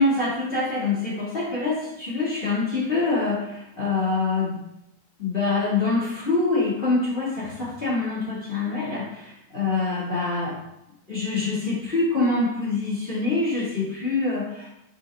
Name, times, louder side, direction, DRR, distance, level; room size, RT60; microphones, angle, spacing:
voice 1, 0.0-4.6 5.2-10.6 11.1-14.7, left 3 dB, 20° left, -7 dB, 1.8 m, -25 dB
8.7 x 5.6 x 3.7 m, 0.85 s
omnidirectional pair, 4.2 m